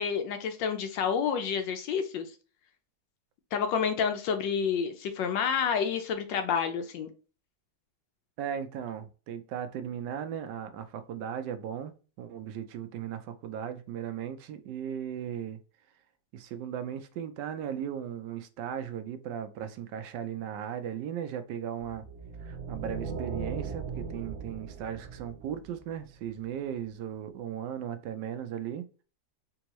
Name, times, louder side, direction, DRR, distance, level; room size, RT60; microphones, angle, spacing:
voice 1, 0.0-2.3 3.5-7.1, left 7 dB, 85° left, 1.3 m, -29 dB
voice 2, 8.4-11.9 12.2-15.6 16.3-22.0 22.4-28.9, right 9 dB, 75° right, 1.2 m, -37 dB
sound 1, 21.8-26.2, right 5 dB, 55° right, 0.9 m, -38 dB
3.7 x 3.5 x 3.0 m
omnidirectional pair, 1.9 m